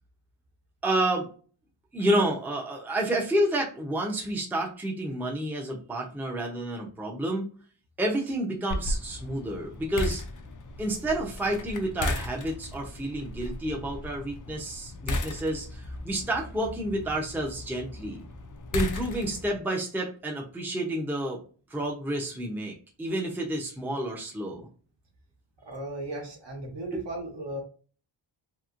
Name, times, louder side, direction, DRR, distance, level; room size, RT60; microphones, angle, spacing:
voice 1, 0.8-1.3 1.9-7.4 8.0-10.2 10.8-18.2 18.7-21.4 21.7-24.7 26.9-27.0, right 1 dB, 5° right, 0 dB, 0.6 m, -30 dB
sound 1, 8.7-19.6, left 2 dB, 45° left, 0.4 m, -36 dB
voice 2, 25.6-27.6, right 1 dB, 60° right, 1 dB, 1.1 m, -36 dB
2.9 x 2.9 x 2.4 m, 0.40 s
wide cardioid pair, 135°, 48 cm